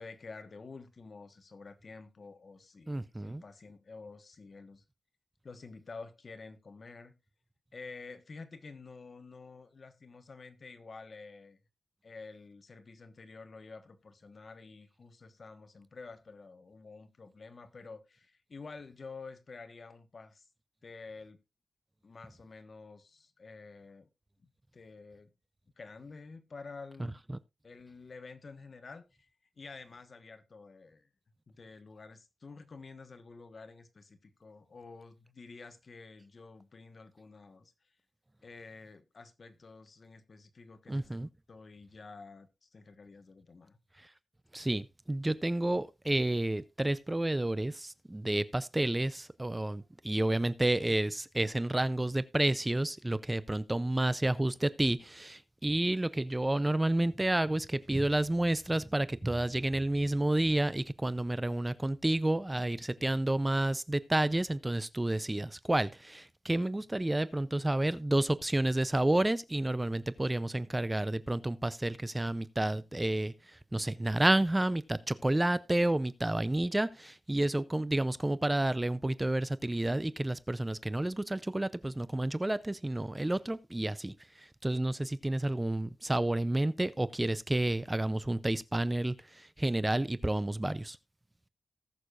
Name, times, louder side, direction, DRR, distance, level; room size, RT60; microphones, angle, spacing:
voice 1, 0.0-4.8 5.4-7.1 7.7-11.6 12.0-20.5 20.8-21.4 22.0-24.1 24.4-25.3 25.8-27.2 27.6-29.3 29.6-31.1 31.5-38.0 38.4-41.2 41.5-43.8, left 4 dB, 55° left, 1.3 m, -50 dB
voice 2, 2.9-3.4 27.0-27.1 40.9-41.3 44.0-44.1 44.5-91.0, right 1 dB, 15° right, 0.5 m, -30 dB
19.0 x 6.6 x 2.5 m
wide cardioid pair, 90°, 0 cm